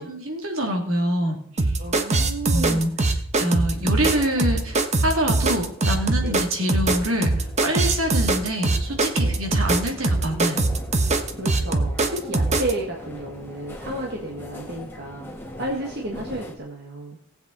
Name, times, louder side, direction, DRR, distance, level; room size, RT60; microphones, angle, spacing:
voice 1, 0.0-1.7 2.5-7.3 7.6-10.6, equal, 80° right, 2 dB, 2.8 m, -26 dB
sound 1, 1.6-12.7, right 2 dB, 35° right, 1.1 m, -22 dB
voice 2, 1.8-3.0 6.2-6.3 9.2-9.4 11.4-17.2, right 1 dB, 55° right, 0 dB, 1.6 m, -32 dB
sound 2, 3.7-16.6, equal, 10° left, 1.7 m, -42 dB
18.5 x 8.0 x 4.1 m, 0.62 s
head